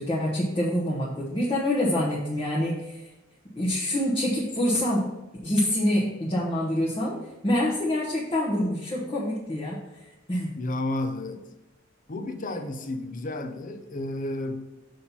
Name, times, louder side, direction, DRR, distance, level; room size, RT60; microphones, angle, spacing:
voice 1, 0.0-3.1 3.5-5.1 5.4-7.2 7.4-9.8 10.3-10.5, left 1 dB, 25° left, -6 dB, 1.1 m, -26 dB
voice 2, 10.6-11.4 12.1-14.6, left 1 dB, 40° left, 7 dB, 0.7 m, -31 dB
6.5 x 4.2 x 5.6 m, 1.0 s
head